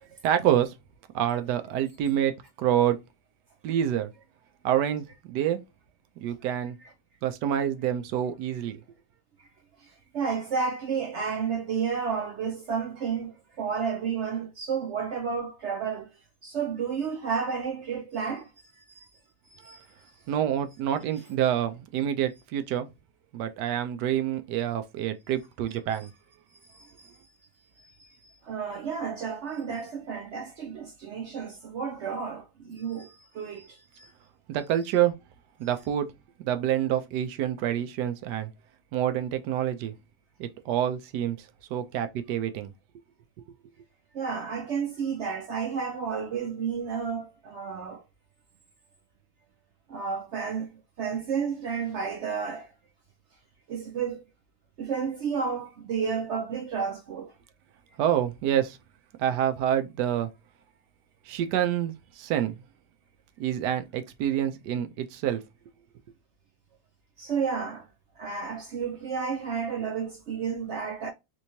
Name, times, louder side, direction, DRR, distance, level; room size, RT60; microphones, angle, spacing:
voice 1, 0.2-0.7 1.1-2.3 2.6-3.0 3.6-4.1 4.6-5.6 6.2-6.8 7.2-8.8 19.7-19.8 20.3-22.9 23.3-26.1 34.5-35.1 35.6-36.1 36.4-38.5 38.9-39.9 40.4-41.4 41.7-42.7 58.0-58.8 59.2-60.3 61.3-62.5 63.4-65.4, right 10 dB, 90° right, 1.2 m, -27 dB
voice 2, 10.1-16.1 16.4-18.5 18.9-19.1 19.5-19.9 21.2-21.3 26.0-26.1 26.7-27.1 28.0-34.1 44.1-48.0 49.9-52.7 53.7-54.2 54.8-57.3 67.2-67.8 68.2-71.1, right 6 dB, 65° right, 0.7 m, -31 dB
3.3 x 3.1 x 2.6 m
omnidirectional pair, 1.7 m